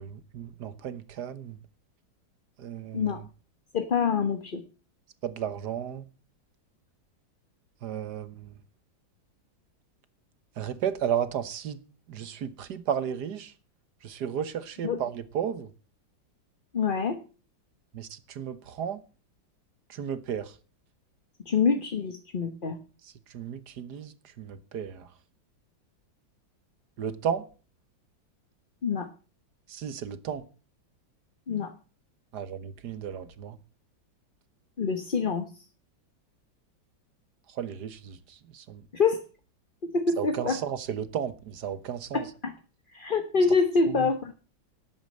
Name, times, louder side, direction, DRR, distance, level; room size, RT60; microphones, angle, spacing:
voice 1, 0.0-1.6 2.6-3.2 5.2-6.0 7.8-8.6 10.6-11.8 12.1-13.5 14.0-15.7 17.9-19.0 19.9-20.6 23.0-25.1 27.0-27.4 29.7-30.5 32.3-33.6 37.5-38.9 40.2-42.3 43.9-44.1, right 8 dB, 60° right, 1.6 m, -34 dB
voice 2, 3.7-4.6 14.8-15.0 16.7-17.2 21.5-22.8 28.8-29.1 31.5-31.7 34.8-35.5 38.9-39.2 39.8-40.6 42.1-42.5 42.9-44.3, left 5 dB, 35° left, 1.0 m, -26 dB
11.5 x 8.7 x 7.9 m
omnidirectional pair, 2.1 m